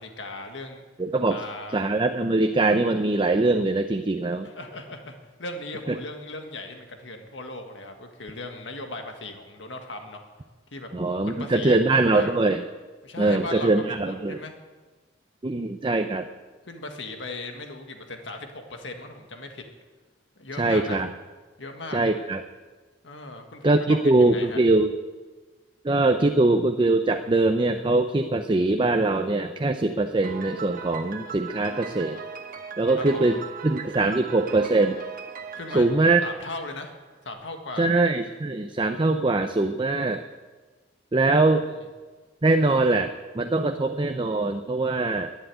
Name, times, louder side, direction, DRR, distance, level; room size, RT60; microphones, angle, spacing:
voice 1, 0.0-0.8 1.2-1.8 4.4-10.2 10.7-12.3 13.0-14.5 16.6-19.6 20.4-21.0 21.6-22.0 23.0-24.6 32.9-33.4 35.5-35.9 36.2-37.0 37.2-37.9, left 2 dB, 85° left, 4 dB, 1.7 m, -38 dB
voice 2, 1.0-1.4 1.7-4.5 5.9-6.0 10.9-12.6 13.2-14.4 15.4-16.3 20.6-21.1 21.9-22.4 23.6-24.9 25.8-32.2 32.8-33.4 33.6-35.0 35.7-36.2 37.8-40.2 41.1-41.7 42.4-45.3, right 2 dB, 25° right, 7 dB, 0.6 m, -22 dB
Piano, 30.2-37.1, right 5 dB, 50° right, 1.0 m, -39 dB
11.5 x 10.5 x 9.2 m, 1.3 s
head